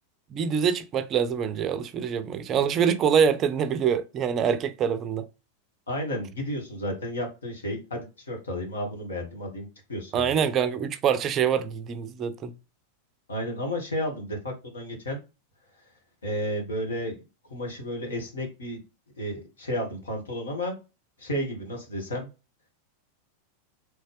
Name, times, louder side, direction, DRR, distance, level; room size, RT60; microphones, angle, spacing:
voice 1, 0.3-5.2 10.1-12.5, right 7 dB, 30° right, 0.4 m, -25 dB
voice 2, 5.9-10.3 13.3-15.2 16.2-17.2 17.5-18.8 19.2-20.7 21.2-22.3, equal, 70° left, 1.5 m, -32 dB
4.2 x 3.2 x 3.2 m
figure-of-eight pair, 90°, 0 cm